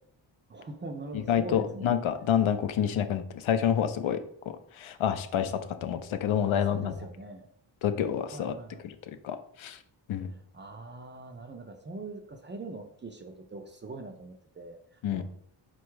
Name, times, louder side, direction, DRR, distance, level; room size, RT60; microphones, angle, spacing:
voice 1, 0.5-1.9 6.7-7.5 8.3-8.8 10.3-14.8 15.1-15.2, right 2 dB, 25° right, 4 dB, 0.4 m, -42 dB
voice 2, 1.1-4.2 4.7-6.9 7.8-8.5 8.8-9.0 9.2-9.8 10.1-10.3 15.0-15.2, left 9 dB, 80° left, 9 dB, 0.6 m, -28 dB
4.1 x 2.3 x 4.6 m, 0.64 s
wide cardioid pair, 120°, 48 cm